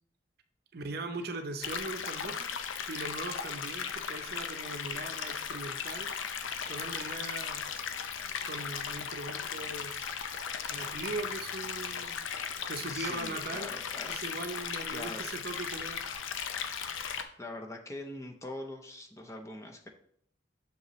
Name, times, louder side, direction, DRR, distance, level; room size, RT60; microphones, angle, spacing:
voice 1, 0.7-2.5 2.9-7.7 8.4-10.1 10.7-12.2 12.7-13.7 14.1-16.0, right 2 dB, 55° right, 7 dB, 0.6 m, -40 dB
sound 1, 1.6-17.2, left 7 dB, 85° left, 0.6 m, -37 dB
voice 2, 12.9-14.2 14.9-15.2 17.4-19.9, left 1 dB, 15° left, 3 dB, 0.6 m, -43 dB
6.7 x 5.4 x 3.1 m, 0.66 s
head